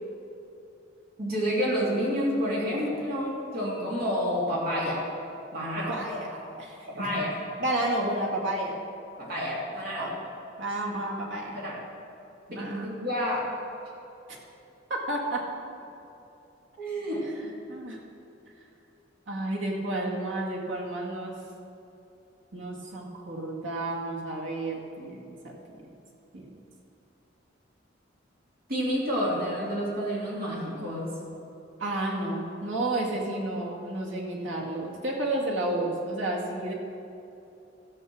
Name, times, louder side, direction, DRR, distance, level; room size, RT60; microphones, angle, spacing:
voice 1, 1.2-5.0 5.5-6.0 6.9-7.4 9.2-10.1 11.5-11.8 12.5-13.4 16.8-17.2 28.7-31.1, equal, 55° right, -5 dB, 3.0 m, -29 dB
voice 2, 5.8-7.1 7.6-8.7 10.0-10.1 10.6-11.5 12.5-12.9 14.3-14.4 14.9-15.4 17.3-18.0 19.3-21.3 22.5-25.5 26.3-26.5 31.8-36.7, right 1 dB, 75° right, -2 dB, 2.0 m, -31 dB
13.0 x 7.8 x 6.1 m, 2.8 s
head